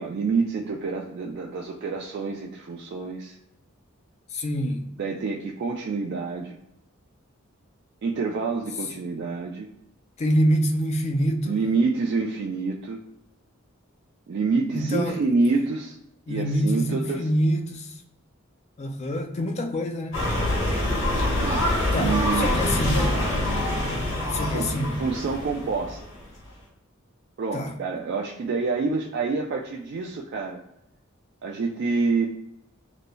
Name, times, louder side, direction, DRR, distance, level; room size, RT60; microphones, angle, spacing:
voice 1, 0.0-3.4 5.0-6.6 8.0-9.7 11.4-13.0 14.3-16.0 16.3-17.2 21.4-21.7 21.9-22.5 24.5-26.0 27.4-30.6 31.4-32.3, right 4 dB, 55° right, 0 dB, 0.3 m, -27 dB
voice 2, 4.3-4.9 10.2-11.6 14.7-15.2 16.3-17.9 18.8-20.2 21.9-23.1 24.3-25.0 27.5-27.7, equal, 30° left, 5 dB, 0.3 m, -25 dB
sound 1, 20.1-26.2, left 1 dB, 85° left, 1.0 m, -25 dB
5.1 x 2.0 x 2.2 m, 0.85 s
head